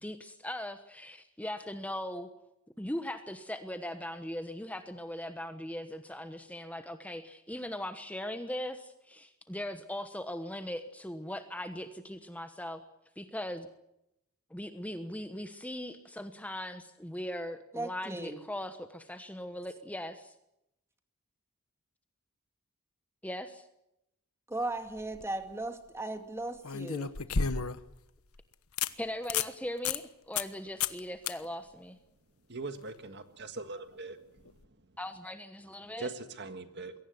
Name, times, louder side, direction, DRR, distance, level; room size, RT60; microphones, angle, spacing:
voice 1, 0.0-2.3 2.8-12.8 13.2-13.7 14.5-20.3 23.2-23.7 29.0-32.0 35.0-36.1, left 1 dB, 5° left, 8 dB, 1.1 m, -39 dB
voice 2, 17.7-18.4 24.5-27.1, right 2 dB, 10° right, 7 dB, 2.3 m, -37 dB
sound 1, 24.9-25.2 26.6-27.9 28.4-28.5 28.8-28.9 29.2-29.5 29.9-30.0 30.4-30.5 30.8-31.0 31.3-31.4 34.5-34.6, left 6 dB, 80° left, 1.2 m, -31 dB
voice 3, 32.5-34.2 36.0-36.9, right 3 dB, 50° right, 9 dB, 1.7 m, -41 dB
22.5 x 17.5 x 9.5 m, 0.84 s
head